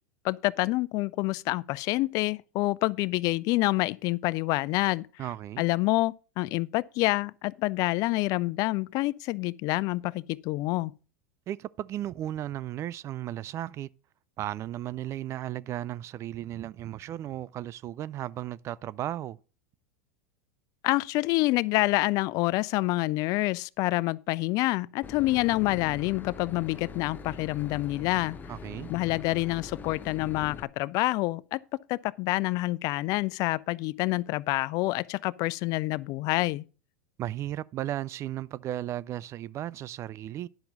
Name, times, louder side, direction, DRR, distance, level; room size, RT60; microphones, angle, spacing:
voice 1, 0.2-5.1 5.6-10.9 20.8-28.4 28.9-31.6 31.9-36.6, left 20 dB, 50° left, 0.4 m, -27 dB
voice 2, 5.2-5.6 11.5-13.9 14.4-19.4 28.5-28.9 37.2-40.5, right 12 dB, 35° right, 0.4 m, -35 dB
Boat Water vehicle / Engine, 25.0-30.6, left 5 dB, 20° left, 0.8 m, -43 dB
10.0 x 5.9 x 5.2 m
hypercardioid pair, 105°, 8 cm